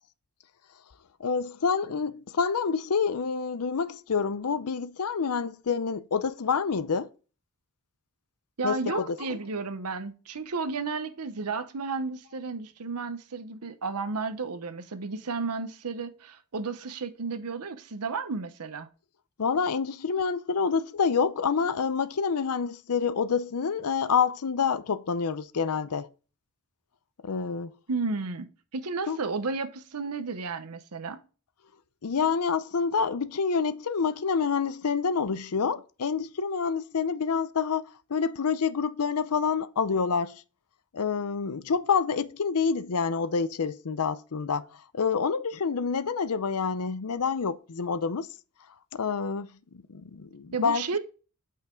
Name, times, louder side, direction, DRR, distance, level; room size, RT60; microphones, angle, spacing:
voice 1, 1.2-7.1 8.6-9.1 19.4-26.1 27.2-27.8 29.1-29.2 32.0-40.4 40.9-44.6 44.9-48.3 48.9-49.5 49.9-50.8, left 5 dB, 80° left, 0.6 m, -27 dB
voice 2, 8.6-18.9 27.9-31.2 50.5-51.0, right 4 dB, 90° right, 0.9 m, -33 dB
8.6 x 5.8 x 3.8 m
head